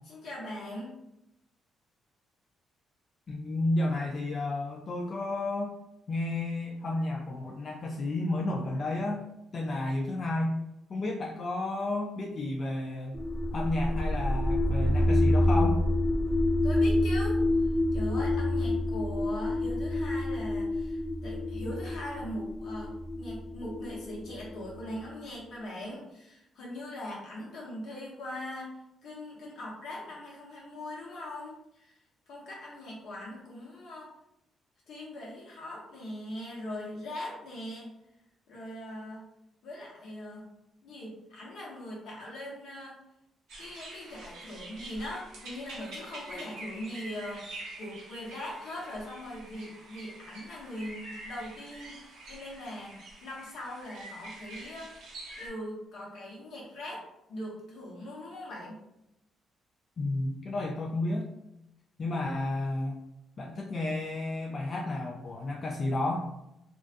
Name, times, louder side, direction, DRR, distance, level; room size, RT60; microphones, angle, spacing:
voice 1, 0.1-0.9 16.6-28.7 29.0-32.0 32.3-34.1 34.9-37.9 38.5-39.2 39.6-40.5 40.8-43.0 43.6-52.0 52.3-52.9 53.2-58.8, left 1 dB, 75° left, -4 dB, 1.0 m, -41 dB
voice 2, 3.3-5.7 6.1-9.2 9.5-10.6 10.9-13.2 13.5-15.8 60.0-61.2 62.0-63.0 63.4-66.2, left 2 dB, 45° left, -1 dB, 0.3 m, -31 dB
sound 1, 13.1-24.9, left 1 dB, 15° left, 0.6 m, -28 dB
sound 2, 43.5-55.5, right 2 dB, 85° right, 0.8 m, -46 dB
2.5 x 2.2 x 2.5 m, 0.86 s
cardioid pair, 90°, 0 cm